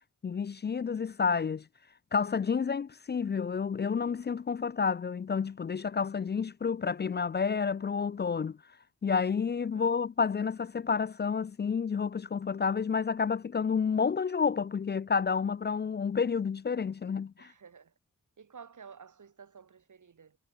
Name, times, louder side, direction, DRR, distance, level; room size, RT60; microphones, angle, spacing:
voice 1, 0.2-1.6 2.1-8.6 9.0-17.5, left 6 dB, 35° left, 0.4 m, -30 dB
voice 2, 17.4-17.9 18.4-20.4, right 6 dB, 80° right, 6.3 m, -52 dB
wide cardioid pair, 130°, 30 cm